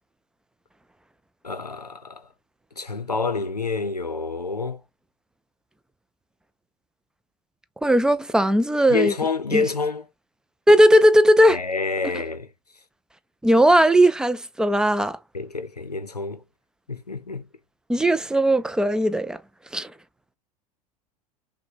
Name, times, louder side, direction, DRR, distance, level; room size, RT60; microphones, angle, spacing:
voice 1, 1.4-2.3 2.8-4.8 8.9-10.1 11.5-12.5 15.3-16.4 16.9-17.5, left 4 dB, 90° left, 0.6 m, -28 dB
voice 2, 7.8-9.1 9.5-9.6 10.7-11.6 13.4-15.2 17.9-19.4 19.7-19.9, equal, 5° right, 0.3 m, -17 dB
5.8 x 2.2 x 2.6 m
figure-of-eight pair, 80°, 20 cm